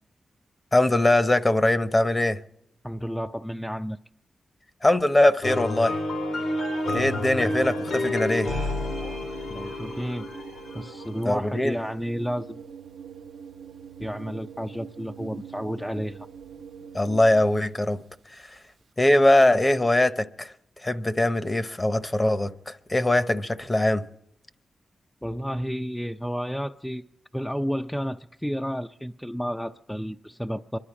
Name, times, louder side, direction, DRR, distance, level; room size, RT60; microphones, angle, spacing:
voice 1, 0.7-2.4 4.8-6.0 6.9-8.5 11.2-11.7 16.9-18.0 19.0-20.5 20.8-24.0, left 1 dB, 25° left, 0.9 m, -21 dB
voice 2, 2.8-4.0 9.5-10.3 10.7-12.6 14.0-16.3 25.2-27.0 27.3-30.8, equal, 5° left, 0.5 m, -31 dB
sound 1, 5.4-11.2, left 2 dB, 85° left, 2.9 m, -30 dB
Organ, 6.8-17.9, right 6 dB, 70° right, 0.7 m, -42 dB
25.0 x 11.5 x 4.9 m
cardioid pair, 65°, 0 cm